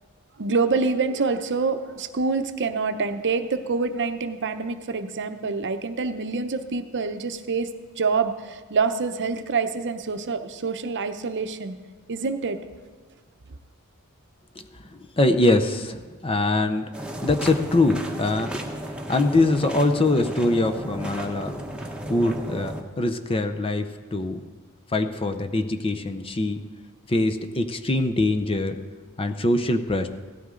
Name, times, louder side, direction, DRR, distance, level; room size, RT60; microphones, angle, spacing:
voice 1, 0.4-7.7 8.0-11.8 12.1-12.6, right 4 dB, 55° right, 8 dB, 0.8 m, -26 dB
voice 2, 14.9-16.8 17.2-18.5 19.1-21.6 22.1-24.4 24.9-26.6 27.1-28.8 29.2-30.1, left 2 dB, 25° left, 8 dB, 0.7 m, -23 dB
sound 1, 16.9-22.8, equal, 5° right, 1.1 m, -34 dB
16.5 x 13.0 x 3.8 m, 1.5 s
head